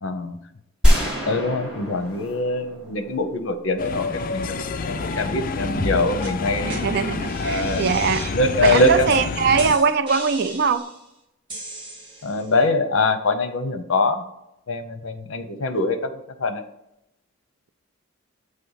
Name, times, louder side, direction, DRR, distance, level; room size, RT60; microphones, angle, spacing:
voice 1, 0.0-0.4 1.3-6.8 7.4-7.8 8.3-9.1 12.2-14.2 14.7-16.0 16.4-16.6, left 2 dB, 70° left, 9 dB, 0.7 m, -23 dB
sound 1, 0.8-3.7, equal, 5° right, 2.3 m, -23 dB
sound 2, 3.8-9.8, left 4 dB, 40° left, 0.4 m, -28 dB
sound 3, 5.7-5.9 6.2-6.3 6.7-6.8 7.2-8.3 8.6-9.2 9.6-11.0 11.5-12.4, right 1 dB, 25° right, 1.9 m, -33 dB
voice 2, 6.6-8.3 8.6-10.9, right 5 dB, 55° right, 11 dB, 0.4 m, -21 dB
7.5 x 3.3 x 5.6 m, 0.85 s
head